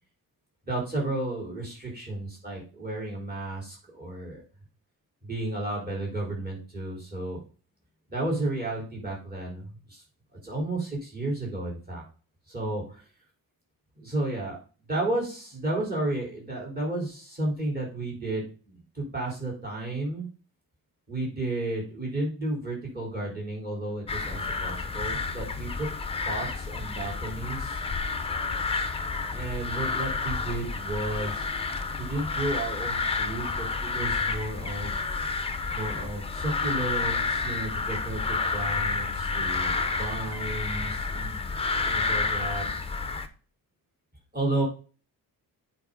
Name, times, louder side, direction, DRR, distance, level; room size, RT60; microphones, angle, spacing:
voice 1, 0.6-4.4 5.2-7.4 8.1-10.0 10.4-12.0 12.5-13.0 14.0-14.6 14.9-20.2 21.1-25.9 26.3-27.8 29.3-31.5 32.0-34.9 35.7-41.5 41.9-42.6 44.3-44.6, right 2 dB, 25° right, -4 dB, 4.2 m, -32 dB
sound 1, 24.1-43.3, left 4 dB, 15° left, 0.7 m, -30 dB
8.6 x 5.2 x 3.9 m, 0.37 s
wide cardioid pair, 170°, 38 cm